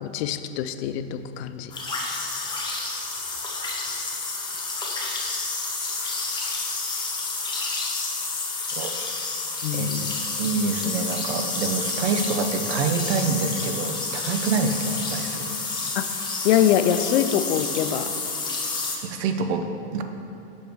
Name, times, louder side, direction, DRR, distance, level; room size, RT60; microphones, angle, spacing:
voice 1, 0.0-1.7 9.6-10.1 16.0-16.1 16.4-18.1, left 10 dB, 70° left, 11 dB, 0.5 m, -24 dB
sound 1, 1.7-19.0, left 3 dB, 15° left, 0.9 m, -29 dB
voice 2, 10.4-15.5 19.0-20.0, right 4 dB, 75° right, 6 dB, 0.7 m, -26 dB
6.4 x 5.3 x 4.5 m, 2.8 s
supercardioid pair, 130°, 33 cm